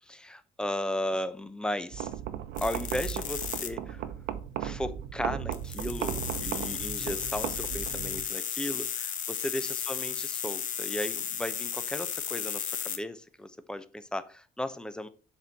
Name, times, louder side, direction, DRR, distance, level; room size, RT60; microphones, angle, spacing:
voice 1, 0.1-2.1 2.6-4.1 4.6-15.1, left 1 dB, 5° left, 0.7 m, -35 dB
sound 1, 1.9-8.3, right 10 dB, 75° right, 0.8 m, -36 dB
sound 2, 2.6-3.7 5.5-13.0, left 8 dB, 50° left, 1.1 m, -34 dB
7.4 x 4.3 x 5.4 m
cardioid pair, 110°, 17 cm